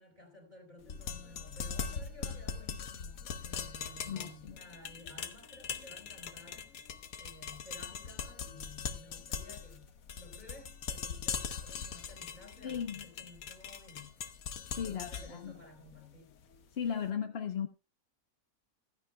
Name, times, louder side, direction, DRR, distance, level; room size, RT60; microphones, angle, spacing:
voice 1, 0.0-6.6 7.2-9.9 10.1-14.1 14.7-16.4, left 1 dB, 25° right, 4.6 m, -54 dB
sound 1, 0.8-16.9, left 6 dB, 60° left, 1.3 m, -41 dB
voice 2, 4.1-4.6 12.6-13.0 14.8-15.5 16.8-17.7, left 8 dB, 45° left, 1.0 m, -36 dB
15.5 x 14.5 x 2.2 m
omnidirectional pair, 1.7 m